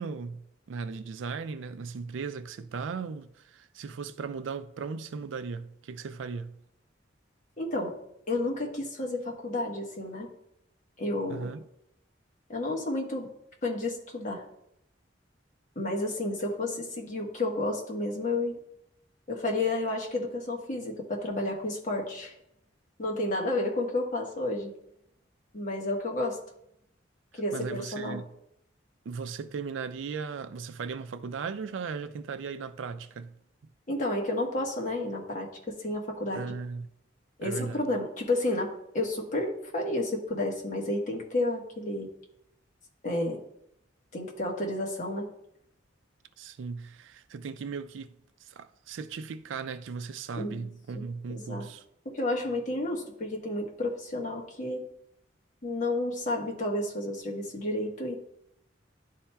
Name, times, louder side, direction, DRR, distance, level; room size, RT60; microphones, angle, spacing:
voice 1, 0.0-6.6 11.3-11.6 27.3-28.3 29.1-33.4 36.3-36.9 37.4-37.9 46.4-51.9, right 5 dB, 80° right, 0.4 m, -37 dB
voice 2, 7.6-8.0 8.3-10.3 11.0-11.5 12.5-13.3 13.6-14.4 15.7-18.6 19.3-22.3 23.0-24.7 25.5-26.4 27.3-28.2 33.9-36.6 37.4-42.1 43.0-43.4 44.1-45.3 50.4-50.7 50.9-51.0 51.3-51.7 52.0-54.8 55.6-58.2, left 2 dB, 40° left, 1.2 m, -31 dB
11.0 x 4.2 x 2.3 m
head